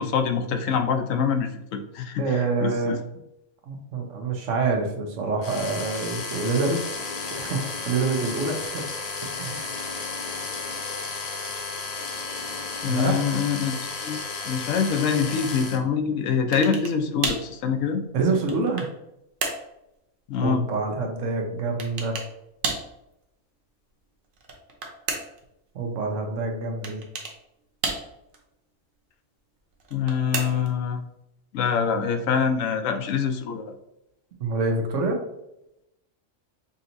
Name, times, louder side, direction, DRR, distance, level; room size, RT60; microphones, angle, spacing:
voice 1, 0.0-2.3 2.6-3.0 12.8-13.7 14.0-14.2 14.5-18.0 20.3-20.6 29.9-31.0 31.5-33.7, left 6 dB, 80° left, 6 dB, 1.0 m, -25 dB
voice 2, 2.2-3.0 3.7-6.8 7.2-8.9 9.3-9.8 12.9-13.2 18.1-18.9 20.4-22.2 25.7-27.0 34.4-35.2, right 3 dB, 70° right, 3 dB, 1.1 m, -26 dB
sound 1, 5.4-15.8, left 4 dB, 55° left, 0.4 m, -33 dB
sound 2, 16.5-17.0 17.2-17.5 18.2-19.0 19.4-19.7 21.8-22.3 22.6-22.9 24.3-25.4 26.8-27.4 27.8-28.4 29.8-30.8, right 3 dB, 50° right, 0.8 m, -31 dB
5.3 x 2.8 x 2.6 m, 0.85 s
omnidirectional pair, 1.3 m